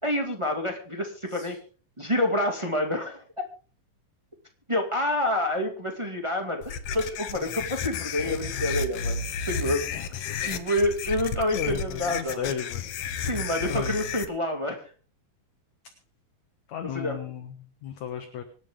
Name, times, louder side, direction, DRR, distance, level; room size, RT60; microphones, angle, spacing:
voice 1, 0.0-1.6 2.0-3.2 4.7-9.9 10.4-12.5 13.2-14.9 16.9-17.2, left 1 dB, 15° right, 2 dB, 1.2 m, -28 dB
sound 1, 6.6-14.2, left 6 dB, 85° left, 1.3 m, -32 dB
voice 2, 11.5-12.8 13.7-14.0 16.7-18.4, left 8 dB, 60° left, 6 dB, 2.2 m, -35 dB
26.0 x 9.2 x 3.7 m, 0.39 s
omnidirectional pair, 4.5 m